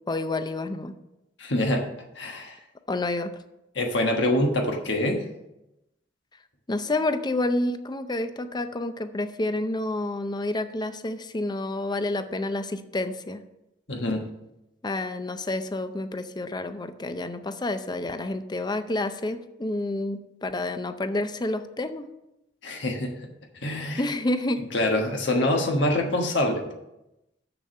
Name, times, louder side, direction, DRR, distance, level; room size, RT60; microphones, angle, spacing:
voice 1, 0.1-0.9 2.9-3.3 6.7-13.4 14.8-22.1 24.0-24.6, left 2 dB, 25° left, 10 dB, 0.6 m, -29 dB
voice 2, 1.4-1.9 2.1-2.6 3.7-5.2 13.9-14.2 22.6-23.1 23.6-24.0 24.7-26.6, left 1 dB, 70° left, 2 dB, 1.3 m, -25 dB
7.1 x 6.9 x 6.4 m, 0.91 s
head